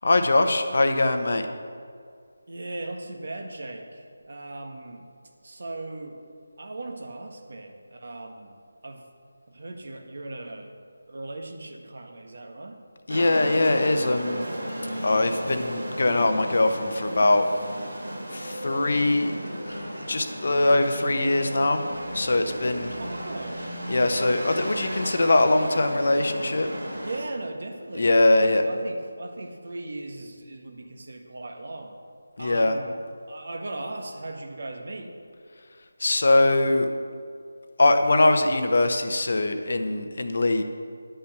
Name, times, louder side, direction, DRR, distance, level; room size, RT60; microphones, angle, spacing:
voice 1, 0.0-1.5 13.1-14.5 15.0-17.5 18.3-21.8 22.1-23.0 23.9-26.7 27.9-28.7 32.4-32.8 36.0-36.9 37.8-40.6, left 2 dB, 60° left, 7 dB, 0.9 m, -22 dB
voice 2, 2.5-5.0 5.4-6.2 6.6-8.6 8.8-9.0 9.5-10.7 11.1-12.8 22.9-23.6 27.0-31.9 32.4-33.0 33.3-35.1, right 2 dB, 60° right, 3 dB, 1.4 m, -38 dB
sound 1, 13.1-27.2, equal, 90° right, 2.6 m, -35 dB
10.0 x 5.7 x 6.7 m, 2.2 s
figure-of-eight pair, 170°, 0 cm